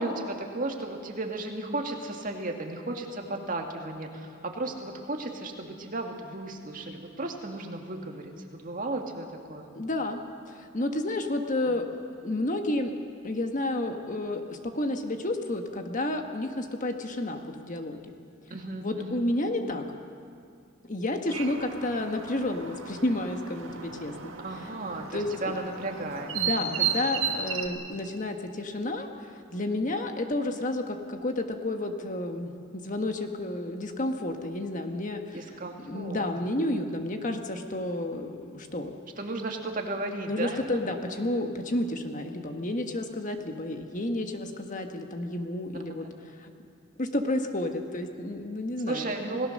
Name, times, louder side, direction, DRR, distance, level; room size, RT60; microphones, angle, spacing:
voice 1, 0.0-9.7 11.7-11.8 18.5-19.3 24.4-27.0 35.3-36.2 36.5-37.0 39.2-40.6 46.0-46.1 48.9-49.5, right 2 dB, 40° right, 3 dB, 2.1 m, -35 dB
voice 2, 9.7-10.2 10.5-12.9 13.2-18.0 18.8-19.8 20.8-24.3 25.1-25.5 26.3-35.4 35.8-39.0 40.3-46.1 46.4-46.5 47.0-49.1, left 1 dB, 40° left, 5 dB, 1.4 m, -31 dB
sound 1, 21.3-27.7, right 6 dB, 80° right, 2.0 m, -34 dB
27.0 x 18.0 x 6.6 m, 2.3 s
head